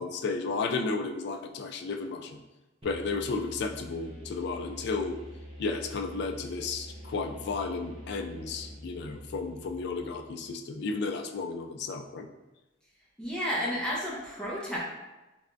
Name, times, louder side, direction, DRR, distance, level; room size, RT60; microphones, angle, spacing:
voice 1, 0.0-2.4 2.8-5.2 5.6-12.3, left 4 dB, 55° left, 5 dB, 0.3 m, -33 dB
sound 1, 2.8-10.5, equal, 30° right, 0.8 m, -46 dB
voice 2, 13.2-14.8, equal, 5° left, -6 dB, 0.7 m, -31 dB
3.3 x 3.3 x 2.5 m, 1.0 s
head